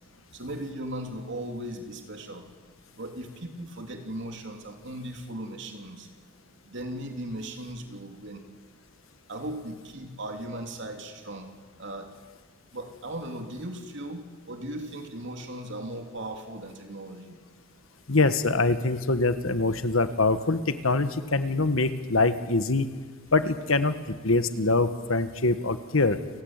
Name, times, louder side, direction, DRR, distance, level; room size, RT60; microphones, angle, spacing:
voice 1, 0.3-2.5 2.9-6.1 6.6-8.4 9.3-12.1 12.7-17.4, right 1 dB, 60° right, 4 dB, 3.2 m, -37 dB
voice 2, 18.1-22.9 23.3-23.9 24.2-26.2, left 3 dB, 80° left, 10 dB, 1.5 m, -24 dB
29.0 x 16.0 x 9.0 m, 1.4 s
head